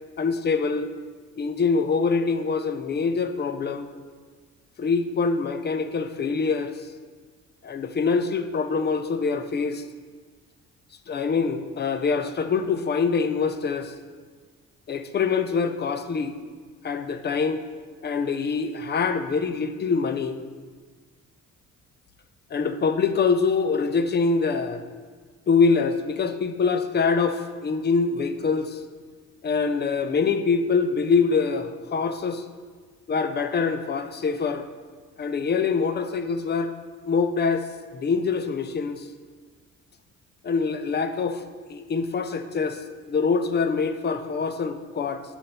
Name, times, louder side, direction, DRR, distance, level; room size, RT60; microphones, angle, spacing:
voice 1, 0.2-0.9 1.4-3.9 4.8-6.7 7.6-9.8 11.1-13.9 14.9-16.3 16.8-17.6 18.0-20.4 22.5-24.8 25.5-28.8 29.4-32.4 33.1-34.7 35.2-36.7 37.1-37.7 37.9-39.1 40.4-41.4 41.7-42.8 43.1-45.2, left 5 dB, 35° left, 9 dB, 0.5 m, -24 dB
7.1 x 4.4 x 5.3 m, 1.5 s
cardioid pair, 90°, 30 cm